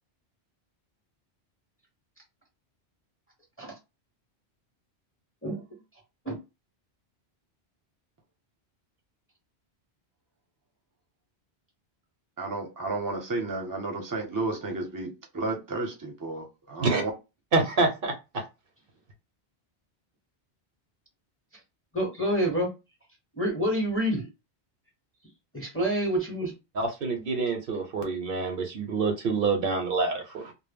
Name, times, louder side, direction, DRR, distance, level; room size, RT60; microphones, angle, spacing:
voice 1, 12.4-17.1, right 2 dB, 25° right, 0.6 m, -32 dB
voice 2, 17.5-18.4 26.7-30.5, right 3 dB, 60° right, 0.7 m, -27 dB
voice 3, 21.9-22.7 23.4-24.3 25.5-26.5, equal, 15° left, 0.7 m, -27 dB
2.0 x 2.0 x 3.4 m
omnidirectional pair, 1.1 m